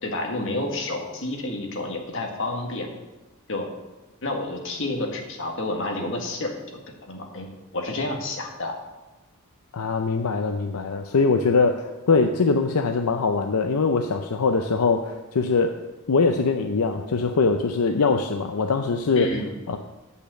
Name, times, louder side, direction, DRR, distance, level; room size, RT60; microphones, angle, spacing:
voice 1, 0.0-2.9 3.5-3.7 4.2-6.8 7.1-7.5 7.7-8.7 19.1-19.5, left 2 dB, 60° left, 2 dB, 1.7 m, -29 dB
voice 2, 9.7-15.7 16.1-19.3 19.7-19.8, left 4 dB, 85° left, 6 dB, 0.6 m, -22 dB
8.5 x 5.6 x 7.6 m, 1.1 s
head